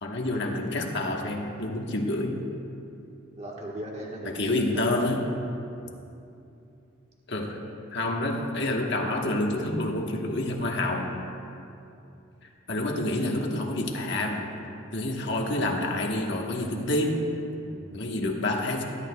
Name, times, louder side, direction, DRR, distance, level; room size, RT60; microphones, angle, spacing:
voice 1, 0.0-2.4 4.2-5.2 7.3-7.6 7.9-11.1 12.7-14.5 14.9-17.3 17.9-18.8, left 1 dB, 60° left, 1 dB, 1.2 m, -28 dB
voice 2, 3.4-5.0 5.8-5.9 17.6-17.9, right 1 dB, 35° right, -3 dB, 1.4 m, -38 dB
20.0 x 11.5 x 2.3 m, 2.7 s
head